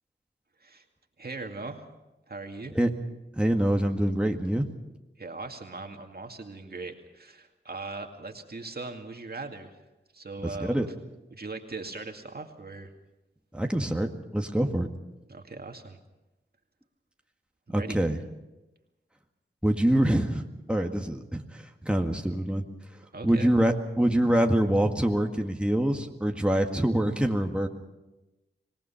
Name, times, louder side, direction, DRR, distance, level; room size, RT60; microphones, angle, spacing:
voice 1, 1.2-1.8 2.3-2.7 5.2-9.8 10.1-10.8 11.3-12.9 15.3-16.0 17.7-18.0 23.1-23.5, right 3 dB, 55° right, 4 dB, 2.4 m, -39 dB
voice 2, 3.4-4.7 10.6-10.9 13.5-14.9 17.7-18.2 19.6-20.4 20.7-22.6 23.2-27.7, right 1 dB, 5° right, 3 dB, 1.8 m, -25 dB
25.5 x 18.5 x 5.8 m, 1.0 s
cardioid pair, 50°, 19 cm